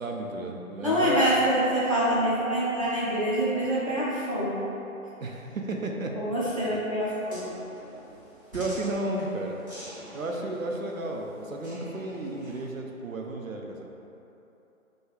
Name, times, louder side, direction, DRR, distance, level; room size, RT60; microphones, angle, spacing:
voice 1, 0.0-1.2 5.2-6.2 6.7-6.8 8.5-9.6 10.1-13.8, right 2 dB, 70° right, 1 dB, 0.7 m, -33 dB
voice 2, 0.8-4.6 6.1-7.4, equal, 25° left, -9 dB, 0.5 m, -25 dB
sound 1, 7.3-12.7, equal, 15° right, 0.8 m, -46 dB
6.3 x 2.3 x 3.1 m, 3.0 s
figure-of-eight pair, 145°, 42 cm